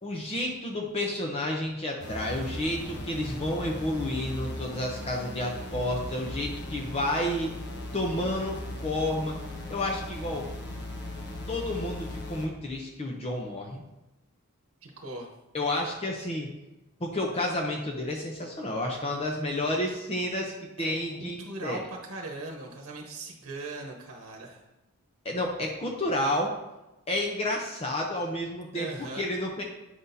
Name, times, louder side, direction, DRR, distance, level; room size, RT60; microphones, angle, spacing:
voice 1, 0.0-7.6 7.9-9.3 9.7-10.5 11.5-13.8 15.5-16.5 17.0-21.8 25.2-26.6 27.1-29.6, left 1 dB, 30° left, 0 dB, 0.7 m, -30 dB
sound 1, 2.0-12.5, left 1 dB, 50° left, 1.2 m, -38 dB
voice 2, 14.8-15.3 20.8-24.6 28.7-29.3, right 2 dB, 70° right, 0 dB, 1.0 m, -39 dB
9.2 x 6.0 x 2.7 m, 1.0 s
head